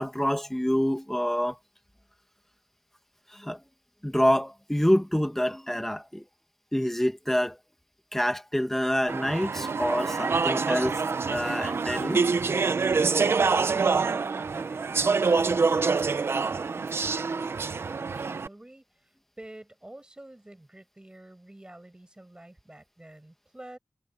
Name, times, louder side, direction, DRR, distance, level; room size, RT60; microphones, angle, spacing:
voice 1, 0.0-1.6 3.3-3.6 4.0-6.2 6.7-7.6 8.1-11.0 11.3-12.2, equal, 5° left, 2.0 m, -26 dB
Speech / Chatter, 9.1-18.5, right 4 dB, 70° right, 0.7 m, -26 dB
voice 2, 12.9-15.4 15.7-19.1 19.4-23.8, right 1 dB, 20° right, 7.5 m, -48 dB
wide cardioid pair, 60°, 4 cm